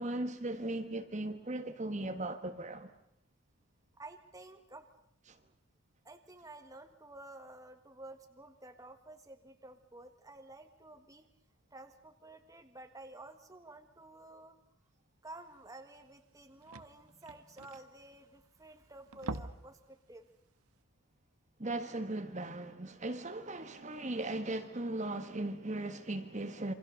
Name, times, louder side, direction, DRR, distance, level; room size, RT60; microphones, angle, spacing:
voice 1, 0.0-2.9 21.6-26.7, right 2 dB, 30° right, 1.6 m, -38 dB
voice 2, 4.0-4.9 6.0-11.3 11.7-14.6 15.2-20.3, right 2 dB, 15° right, 1.6 m, -52 dB
sound 1, 15.7-15.8 16.0-16.1 16.3-18.6 19.0-19.8 20.1-20.3 20.7-20.8, right 3 dB, 80° right, 1.3 m, -44 dB
28.0 x 25.0 x 6.6 m
head